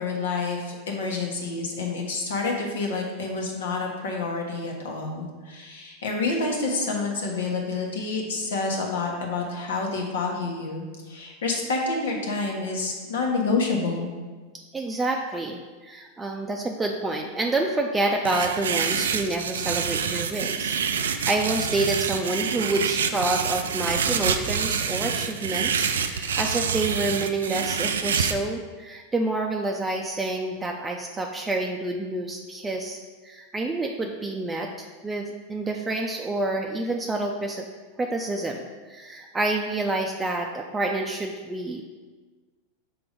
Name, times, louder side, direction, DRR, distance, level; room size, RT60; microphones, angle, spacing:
voice 1, 0.0-14.1, left 3 dB, 80° left, 0 dB, 1.3 m, -28 dB
voice 2, 14.7-37.7 38.0-41.8, right 2 dB, 15° right, 1 dB, 0.5 m, -28 dB
sound 1, 18.3-28.3, right 6 dB, 90° right, 0.4 m, -27 dB
6.0 x 3.5 x 5.1 m, 1.4 s
hypercardioid pair, 105°, 0 cm